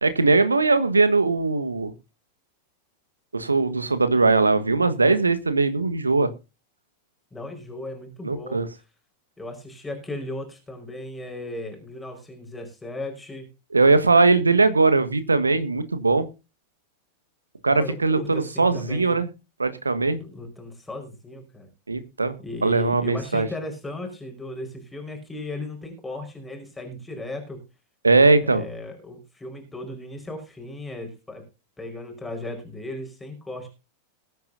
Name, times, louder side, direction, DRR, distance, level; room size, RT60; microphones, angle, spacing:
voice 1, 0.0-1.9 3.3-6.3 8.2-8.7 13.7-16.3 17.6-19.3 19.6-20.2 21.9-23.5 28.0-28.6, right 3 dB, 80° right, 13 dB, 1.3 m, -20 dB
voice 2, 7.3-8.6 9.4-13.5 17.7-19.2 20.2-21.7 22.4-27.6 28.4-31.4 31.8-33.7, left 2 dB, 10° left, 3 dB, 4.8 m, -36 dB
21.0 x 9.4 x 2.7 m, 0.29 s
figure-of-eight pair, 90°, 0 cm